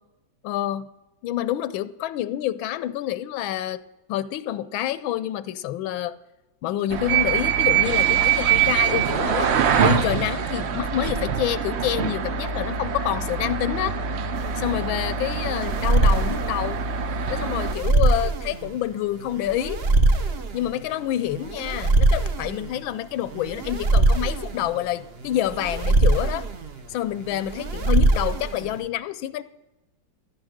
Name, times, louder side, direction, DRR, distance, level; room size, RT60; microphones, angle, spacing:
voice 1, 0.4-0.9 1.2-3.8 4.1-6.2 6.6-9.5 9.8-14.0 14.6-16.8 17.3-19.8 20.5-26.5 26.9-29.4, left 12 dB, 80° left, 16 dB, 1.4 m, -27 dB
sound 1, 6.9-17.7, right 8 dB, 90° right, 0.5 m, -24 dB
sound 2, 14.3-28.9, right 2 dB, 45° right, 0.8 m, -23 dB
14.5 x 9.6 x 6.4 m, 1.0 s
omnidirectional pair, 2.2 m